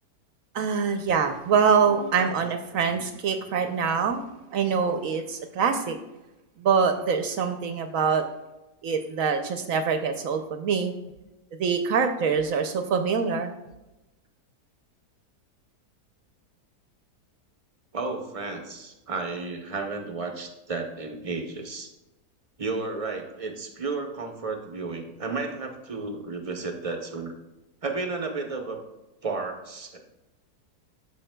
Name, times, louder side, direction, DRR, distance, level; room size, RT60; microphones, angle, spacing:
voice 1, 0.5-6.0 6.6-8.2 8.8-10.9 11.6-13.5, right 6 dB, 70° right, 7 dB, 0.9 m, -24 dB
voice 2, 17.9-21.9 22.6-27.3 27.8-28.8 29.2-30.0, right 3 dB, 40° right, 3 dB, 0.5 m, -32 dB
13.5 x 5.6 x 2.2 m, 1.0 s
omnidirectional pair, 1.7 m